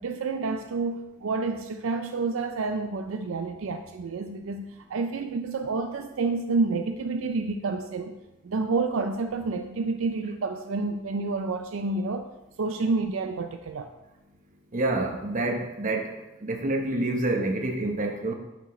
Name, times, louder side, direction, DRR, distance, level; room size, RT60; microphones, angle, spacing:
voice 1, 0.0-8.2 8.4-12.3 12.6-13.9, right 3 dB, 75° right, 7 dB, 0.4 m, -29 dB
voice 2, 14.7-16.1 16.4-18.3, right 2 dB, 40° right, 3 dB, 1.0 m, -27 dB
10.0 x 6.1 x 3.1 m, 0.97 s
head